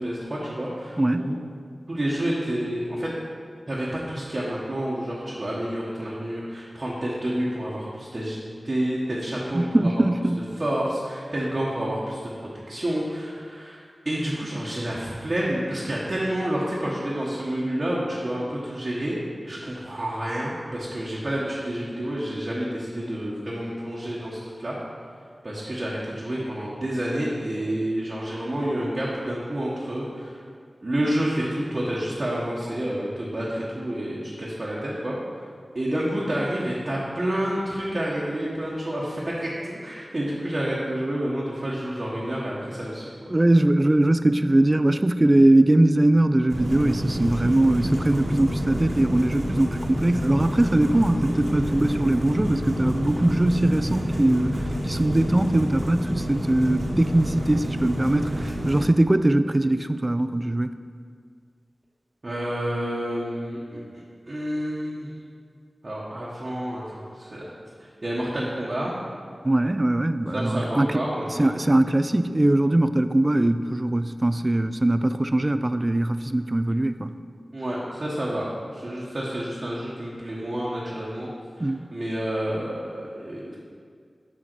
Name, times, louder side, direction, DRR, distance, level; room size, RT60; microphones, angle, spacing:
voice 1, 0.0-1.4 1.9-3.1 3.7-9.9 10.6-24.7 25.4-30.4 30.8-35.4 35.7-43.2 62.2-65.1 65.8-67.5 67.8-69.0 70.3-71.6 77.5-78.5 78.7-81.3 81.6-83.6, right 1 dB, 50° right, -7 dB, 1.2 m, -29 dB
voice 2, 1.0-1.3 9.5-10.5 43.3-60.7 69.4-71.0 71.4-77.1 81.6-81.8, right 1 dB, 30° right, 11 dB, 0.3 m, -21 dB
sound 1, 46.5-58.8, equal, 75° right, 1.3 m, -28 dB
6.4 x 5.7 x 4.6 m, 2.1 s
cardioid pair, 45°, 0 cm